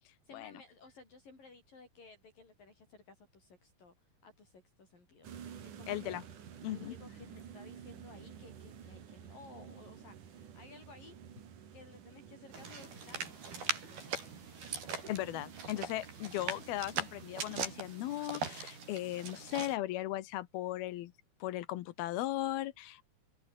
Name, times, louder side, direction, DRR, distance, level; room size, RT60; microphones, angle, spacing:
voice 1, 0.2-6.2 6.7-11.2 11.7-14.2, left 4 dB, 60° left, 9.5 m, -57 dB
sound 1, 5.2-17.8, right 8 dB, 55° right, 3.6 m, -52 dB
voice 2, 5.9-6.2 6.6-6.9 15.1-21.1 21.4-23.0, left 15 dB, 80° left, 2.8 m, -37 dB
sound 2, 12.5-19.8, right 5 dB, 70° right, 8.1 m, -41 dB
omnidirectional pair, 4.6 m